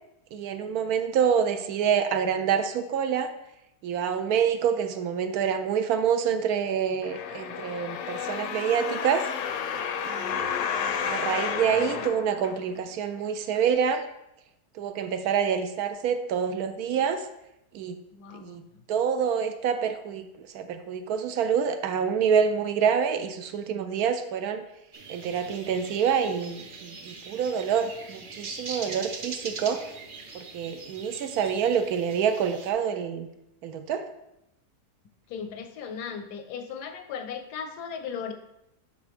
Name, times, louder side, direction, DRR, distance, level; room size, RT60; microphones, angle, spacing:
voice 1, 0.3-3.3 3.8-9.3 10.1-10.5 11.1-14.0 14.8-17.2 17.7-18.0 18.3-18.6 18.9-24.6 25.1-29.8 30.3-33.3 33.6-34.0, right 7 dB, 75° right, 9 dB, 1.0 m, -27 dB
sound 1, 7.0-13.0 13.6-13.7, left 7 dB, 65° left, 0.8 m, -31 dB
voice 2, 18.1-18.8 35.3-38.3, left 7 dB, 85° left, 8 dB, 1.2 m, -37 dB
sound 2, 24.9-32.7, right 4 dB, 50° right, 0.6 m, -42 dB
10.5 x 3.5 x 3.4 m, 0.86 s
omnidirectional pair, 1.7 m